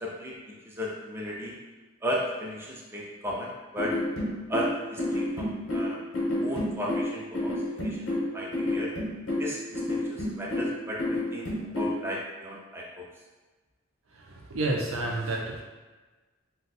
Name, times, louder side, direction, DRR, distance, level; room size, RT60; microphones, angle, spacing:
voice 1, 0.0-1.6 2.0-4.0 4.5-6.0 6.4-8.9 9.4-13.1, equal, 10° right, -3 dB, 0.5 m, -35 dB
sound 1, 3.8-12.0, left 1 dB, 70° left, 0.9 m, -30 dB
voice 2, 14.2-15.6, right 2 dB, 80° right, -1 dB, 0.5 m, -30 dB
2.6 x 2.1 x 4.0 m, 1.3 s
head